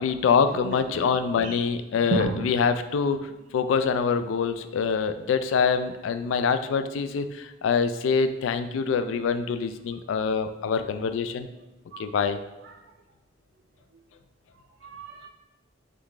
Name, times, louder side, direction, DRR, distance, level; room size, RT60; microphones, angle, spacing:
voice 1, 0.0-11.5 12.0-12.4, left 6 dB, 80° left, 10 dB, 0.3 m, -25 dB
voice 2, 2.0-2.5 11.9-12.1 12.6-12.7 14.8-15.3, right 3 dB, 65° right, 1 dB, 0.4 m, -31 dB
3.9 x 3.5 x 3.2 m, 1.0 s
head